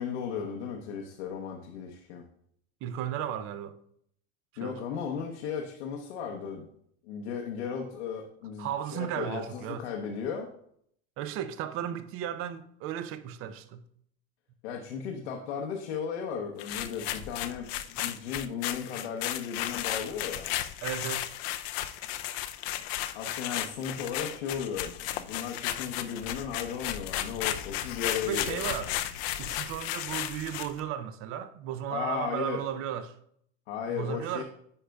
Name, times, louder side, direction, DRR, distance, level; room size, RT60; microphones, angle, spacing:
voice 1, 0.0-2.3 4.6-6.7 7.0-10.5 14.6-20.5 23.1-28.8 31.9-32.6 33.7-34.4, left 7 dB, 85° left, 0.9 m, -35 dB
voice 2, 2.8-3.8 4.6-4.8 8.6-9.8 11.2-13.8 20.8-21.3 28.2-29.0 29.4-33.2 33.9-34.4, right 10 dB, 40° right, 0.5 m, -35 dB
sound 1, 16.6-30.8, left 13 dB, 65° left, 0.5 m, -34 dB
9.9 x 4.9 x 2.3 m
supercardioid pair, 130°, 33 cm